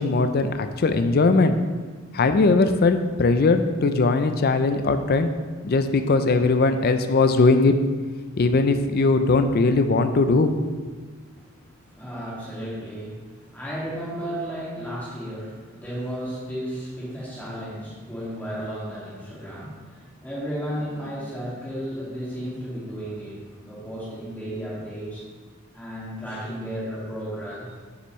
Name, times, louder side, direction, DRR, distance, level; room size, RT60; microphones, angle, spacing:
voice 1, 0.0-1.6 2.1-5.3 5.6-7.7 8.4-10.5 10.8-10.9, left 3 dB, 45° left, 9 dB, 0.4 m, -20 dB
voice 2, 11.2-25.3 25.7-27.7, equal, 10° left, -8 dB, 2.1 m, -34 dB
6.9 x 6.8 x 3.1 m, 1.5 s
head